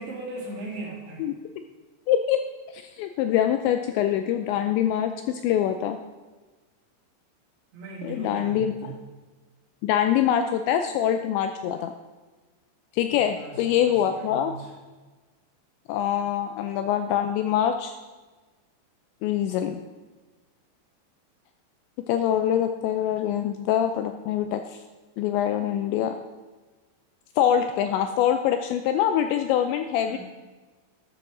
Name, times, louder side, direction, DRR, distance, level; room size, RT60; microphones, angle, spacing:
voice 1, 0.0-1.2 7.7-9.1 13.2-14.7 30.1-30.2, right 3 dB, 60° right, -4 dB, 4.6 m, -38 dB
voice 2, 2.1-2.4 2.7-6.0 8.0-8.9 9.8-11.9 12.9-14.5 15.9-17.9 19.2-19.8 22.1-24.8 25.2-26.2 27.4-30.2, left 10 dB, 85° left, 7 dB, 2.6 m, -24 dB
12.5 x 12.5 x 3.8 m, 1.3 s
omnidirectional pair, 5.6 m